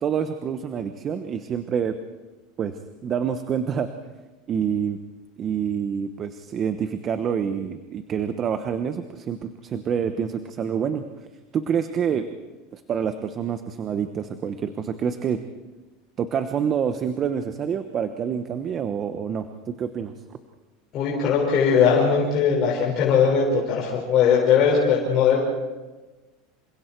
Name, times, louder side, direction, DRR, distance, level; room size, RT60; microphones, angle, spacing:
voice 1, 0.0-2.0 2.6-2.7 3.0-3.9 4.5-5.0 5.4-11.0 11.5-12.3 12.7-15.4 16.2-20.1, right 7 dB, 30° right, 9 dB, 1.0 m, -27 dB
voice 2, 20.9-25.4, left 6 dB, 40° left, -4 dB, 5.8 m, -19 dB
28.5 x 26.0 x 4.6 m, 1.2 s
supercardioid pair, 145°, 0 cm